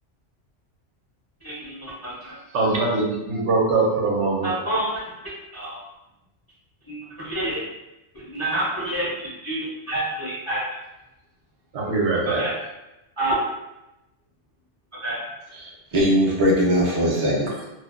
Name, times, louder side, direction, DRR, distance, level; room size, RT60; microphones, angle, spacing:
voice 1, 1.4-2.4 4.4-5.0 5.5-5.8 6.9-7.6 8.2-9.1 9.4-10.6 12.2-12.5 13.2-13.3 15.0-15.2, right 1 dB, 30° left, -9 dB, 0.4 m, -28 dB
voice 2, 2.5-4.5 11.7-12.4, right 3 dB, 75° right, -3 dB, 0.9 m, -22 dB
voice 3, 15.5-17.6, equal, 45° right, -5 dB, 0.4 m, -21 dB
2.5 x 2.1 x 2.4 m, 0.95 s
omnidirectional pair, 1.2 m